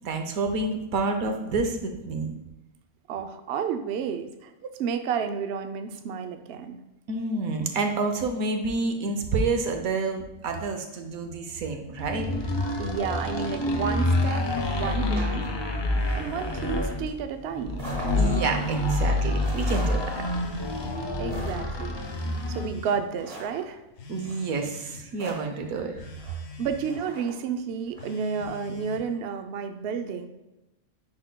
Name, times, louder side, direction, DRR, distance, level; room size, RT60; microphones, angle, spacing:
voice 1, 0.0-2.3 7.1-12.3 18.2-20.0 24.1-26.0, right 3 dB, 85° right, 5 dB, 1.2 m, -28 dB
voice 2, 3.1-6.8 12.8-15.5 16.1-17.8 21.2-23.8 26.6-30.3, right 6 dB, 65° right, 7 dB, 0.7 m, -31 dB
sound 1, 12.0-22.8, left 1 dB, 40° left, 0.3 m, -27 dB
Telephone, 14.0-15.1 15.8-17.0 18.0-19.0 20.0-21.1 22.0-23.1 24.0-25.1 26.0-27.1 28.0-29.1, left 4 dB, 75° left, 1.2 m, -46 dB
sound 2, 14.4-28.1, right 1 dB, 25° right, 1.4 m, -44 dB
10.0 x 4.3 x 2.2 m, 0.97 s
omnidirectional pair, 1.4 m